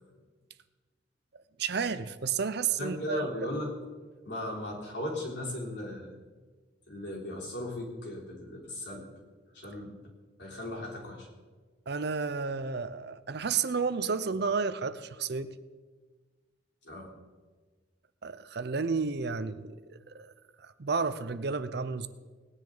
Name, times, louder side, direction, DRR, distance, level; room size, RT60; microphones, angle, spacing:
voice 1, 1.6-3.3 11.9-15.6 18.2-19.8 20.1-20.3 20.6-22.1, right 5 dB, 60° right, 0.6 m, -31 dB
voice 2, 2.8-3.7 4.2-6.1 6.9-9.1 9.5-9.9 10.4-11.3 16.8-17.1, left 1 dB, 70° left, 3.9 m, -37 dB
19.0 x 10.5 x 4.0 m
head